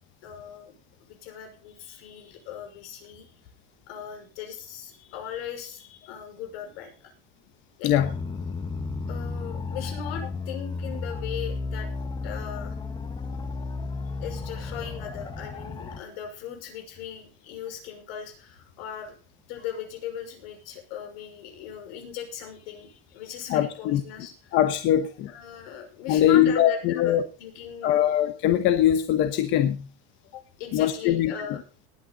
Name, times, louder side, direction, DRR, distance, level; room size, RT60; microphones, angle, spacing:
voice 1, 0.2-3.3 3.9-7.1 7.8-7.9 9.1-11.9 12.2-12.8 14.2-19.2 19.5-24.6 25.3-28.2 30.3-31.6, left 9 dB, 75° left, 4 dB, 5.8 m, -38 dB
sound 1, 8.0-16.0, left 3 dB, 15° left, 1.1 m, -33 dB
voice 2, 23.5-24.0 24.5-25.3 26.1-27.2 27.8-29.8 30.7-31.3, left 11 dB, 40° left, 8 dB, 1.0 m, -22 dB
19.5 x 9.2 x 4.1 m, 0.36 s
cardioid pair, 175°, 29 cm